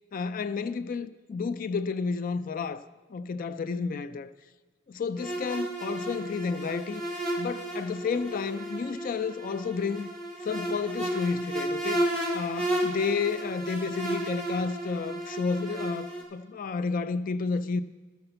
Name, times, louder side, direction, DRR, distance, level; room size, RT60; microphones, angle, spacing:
voice 1, 0.1-4.3 4.9-7.0 7.4-10.1 10.4-12.1 12.3-17.8, left 4 dB, 40° left, 0.3 m, -31 dB
sound 1, 5.2-16.2, right 1 dB, 5° left, 2.1 m, -33 dB
12.5 x 5.8 x 6.7 m
head